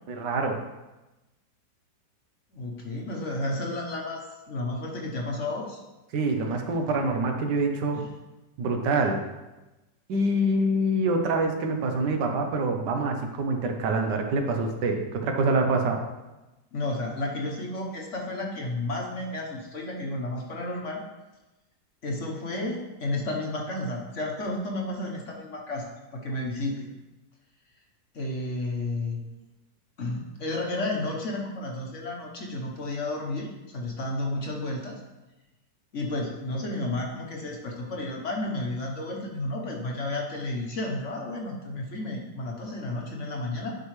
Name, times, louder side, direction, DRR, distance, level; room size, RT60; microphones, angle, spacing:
voice 1, 0.1-0.6 6.1-8.0 8.6-9.2 10.1-16.0, right 2 dB, 75° right, 4 dB, 1.5 m, -25 dB
voice 2, 2.5-5.8 7.9-8.1 16.7-21.0 22.0-26.9 28.1-29.2 30.0-35.0 35.9-43.8, left 2 dB, 50° left, 0 dB, 1.2 m, -32 dB
10.5 x 4.8 x 3.2 m, 1.0 s
omnidirectional pair, 1.9 m